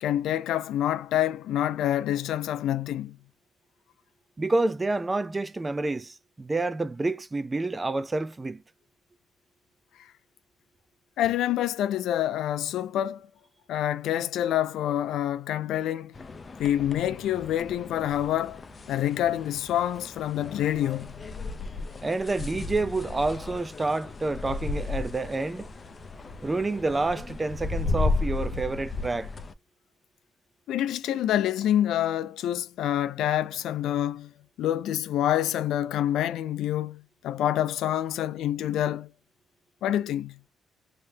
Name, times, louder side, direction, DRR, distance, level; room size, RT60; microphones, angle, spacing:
voice 1, 0.0-3.2 11.2-13.3 13.7-16.1 16.6-18.6 18.9-21.2 30.7-34.3 34.6-39.1 39.8-40.4, left 11 dB, 80° left, 0.3 m, -27 dB
voice 2, 4.4-8.6 22.0-25.7 26.4-29.3, right 2 dB, 20° right, 0.4 m, -28 dB
sound 1, 16.1-29.5, left 3 dB, 35° left, 0.6 m, -34 dB
3.3 x 2.7 x 3.3 m
cardioid pair, 90°, 0 cm